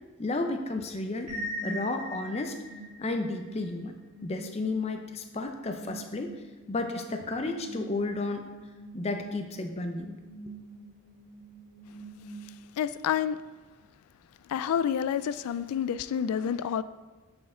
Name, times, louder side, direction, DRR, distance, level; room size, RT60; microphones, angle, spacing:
voice 1, 0.2-1.3 1.6-2.6 3.0-3.9 4.2-6.3 6.7-8.4 8.9-10.2, left 2 dB, 30° left, 5 dB, 0.5 m, -32 dB
sound 1, 1.3-12.9, right 1 dB, 85° right, 1.6 m, -43 dB
voice 2, 12.8-13.4 14.5-16.8, left 8 dB, 85° left, 16 dB, 0.3 m, -28 dB
7.8 x 4.4 x 3.7 m, 1.2 s
head